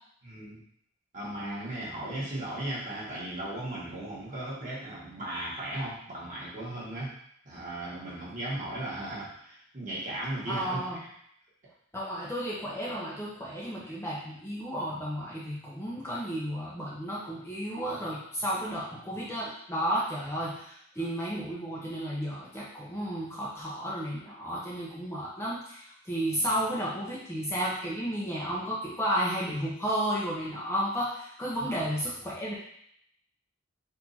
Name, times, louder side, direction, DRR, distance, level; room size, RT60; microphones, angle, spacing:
voice 1, 0.2-0.6 1.1-7.2 7.5-11.0 26.4-26.5 31.6-31.8, right 1 dB, 35° right, -7 dB, 1.6 m, -36 dB
voice 2, 10.5-11.0 11.9-32.5, equal, 10° left, -6 dB, 0.7 m, -33 dB
4.5 x 2.7 x 4.1 m, 0.69 s
head